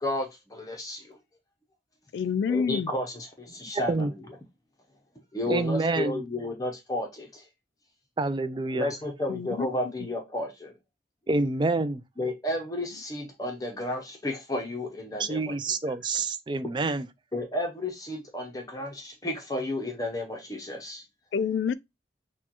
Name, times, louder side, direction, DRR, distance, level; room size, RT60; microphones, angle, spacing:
voice 1, 0.0-1.2 2.5-4.2 5.3-7.4 8.7-10.7 12.2-15.5 15.9-16.0 17.3-21.0, left 1 dB, 20° left, 0.7 m, -32 dB
voice 2, 2.1-2.9 9.3-9.7 10.0-10.1 16.1-16.2 21.3-21.7, left 6 dB, 75° left, 0.3 m, -28 dB
voice 3, 5.5-6.2 8.2-8.9 11.3-12.0 15.2-17.1, right 3 dB, 25° right, 0.3 m, -27 dB
6.2 x 2.3 x 2.9 m
head